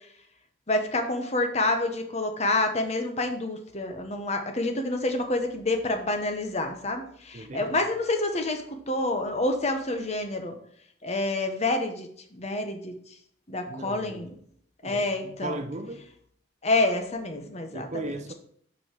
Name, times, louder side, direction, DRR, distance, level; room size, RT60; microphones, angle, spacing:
voice 1, 0.7-10.6 11.0-12.9 13.5-14.3 14.8-15.6 16.6-17.9, left 2 dB, 35° left, 1.1 m, -28 dB
voice 2, 7.3-7.8 13.7-14.3 14.8-16.0 17.7-18.3, right 2 dB, 40° right, 0.6 m, -37 dB
5.5 x 5.5 x 6.0 m
head